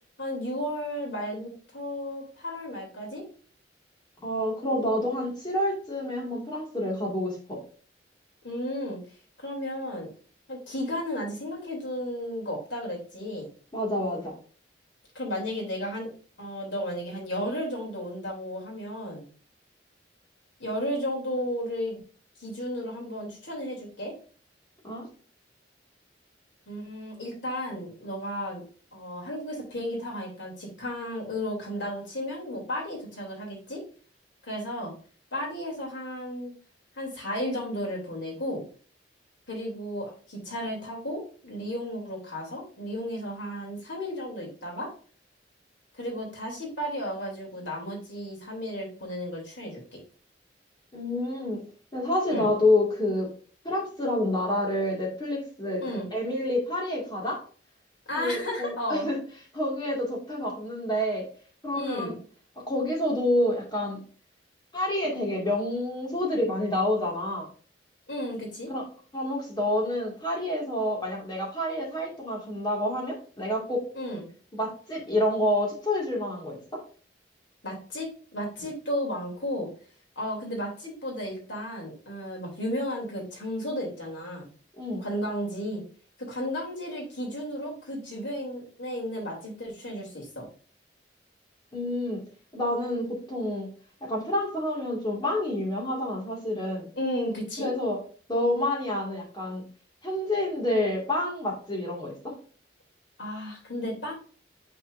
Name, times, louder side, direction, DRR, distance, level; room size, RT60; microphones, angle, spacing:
voice 1, 0.2-3.2 8.4-9.0 9.4-10.1 10.5-13.5 15.1-16.1 16.4-19.3 20.6-22.0 22.4-24.1 26.7-28.6 28.9-33.8 34.5-34.9 35.3-36.5 37.0-38.6 39.5-44.9 45.9-50.0 52.3-52.5 55.8-56.1 58.1-59.2 61.7-62.2 68.1-68.7 73.9-74.2 77.6-79.7 80.2-84.5 85.0-85.8 86.2-90.5 97.0-97.7 103.2-104.1, equal, 75° left, -1 dB, 2.9 m, -33 dB
voice 2, 4.2-7.6 13.7-14.3 24.8-25.1 50.9-51.6 51.9-53.3 53.6-55.8 56.1-57.4 58.2-59.2 59.5-61.3 61.6-62.1 62.6-64.0 64.7-67.5 68.7-68.8 69.1-73.8 74.5-76.8 84.8-85.0 91.7-92.2 92.5-93.7 94.0-96.9 97.6-98.0 98.3-99.6 100.0-102.4, left 1 dB, 25° left, -2 dB, 2.0 m, -28 dB
8.8 x 4.3 x 2.5 m, 0.41 s
head